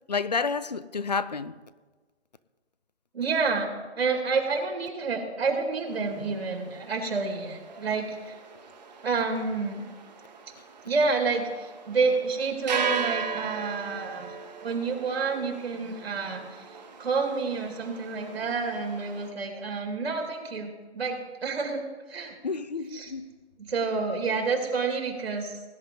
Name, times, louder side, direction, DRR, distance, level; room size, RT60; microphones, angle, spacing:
voice 1, 0.1-1.6 22.4-23.3, left 5 dB, 40° left, 0.4 m, -30 dB
voice 2, 3.1-3.7 4.0-8.4 9.0-9.8 10.8-14.3 14.6-16.7 17.0-22.4 22.9-23.1 23.6-25.6, right 4 dB, 65° right, 2.4 m, -29 dB
sound 1, 5.9-19.3, right 6 dB, 40° right, 1.6 m, -38 dB
19.5 x 10.0 x 3.8 m
hypercardioid pair, 175°, 33 cm